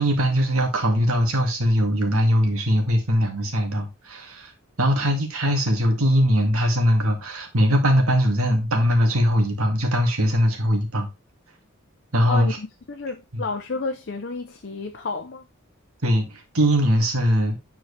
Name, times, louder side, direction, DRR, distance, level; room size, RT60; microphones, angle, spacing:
voice 1, 0.0-4.5 4.8-11.1 12.1-12.5 13.3-13.5 16.0-17.6, equal, 80° right, 2.0 m, -21 dB
voice 2, 12.3-15.5, left 3 dB, 50° left, 0.6 m, -31 dB
9.1 x 4.6 x 3.2 m
head